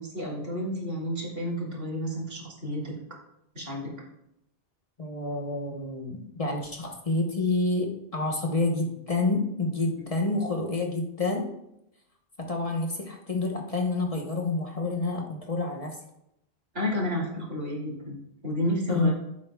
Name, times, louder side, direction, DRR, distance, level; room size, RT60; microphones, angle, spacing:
voice 1, 0.0-2.9 3.5-3.9 16.7-19.1, left 1 dB, 70° right, -3 dB, 2.8 m, -31 dB
voice 2, 5.0-11.5 12.4-16.0 18.9-19.1, left 3 dB, 35° left, 1 dB, 1.1 m, -28 dB
14.5 x 7.4 x 2.3 m, 0.82 s
omnidirectional pair, 1.1 m